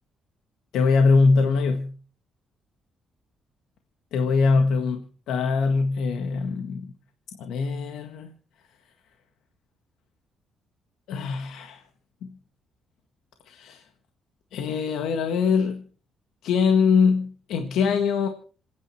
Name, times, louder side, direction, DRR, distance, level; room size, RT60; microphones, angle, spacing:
voice 1, 0.7-1.9 4.1-6.9 7.4-8.3 11.1-11.8 12.2-12.3 13.5-13.8 14.5-15.8 16.4-18.3, left 4 dB, 85° left, 5 dB, 1.7 m, -22 dB
27.5 x 9.6 x 4.5 m, 0.40 s
cardioid pair, 90°, 0 cm